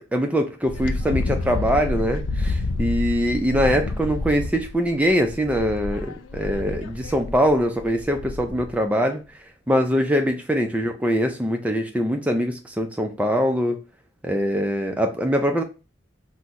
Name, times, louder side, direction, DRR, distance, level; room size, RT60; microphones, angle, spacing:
voice 1, 0.1-9.2 9.7-13.8 14.2-15.6, equal, 5° right, 0.4 m, -23 dB
Wind, 0.6-8.8, left 2 dB, 70° left, 0.3 m, -29 dB
3.7 x 2.1 x 2.8 m
head